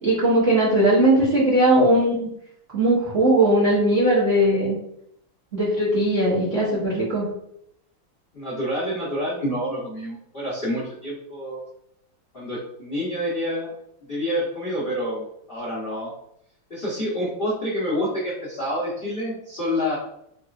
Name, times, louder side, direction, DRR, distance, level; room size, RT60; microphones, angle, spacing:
voice 1, 0.0-2.1 2.7-4.8 5.5-7.3, right 1 dB, 45° right, -6 dB, 1.0 m, -19 dB
voice 2, 8.3-11.7 12.3-13.7 14.1-16.1 16.7-20.0, equal, 55° left, -7 dB, 0.6 m, -28 dB
4.1 x 2.3 x 2.3 m, 0.74 s
omnidirectional pair, 2.4 m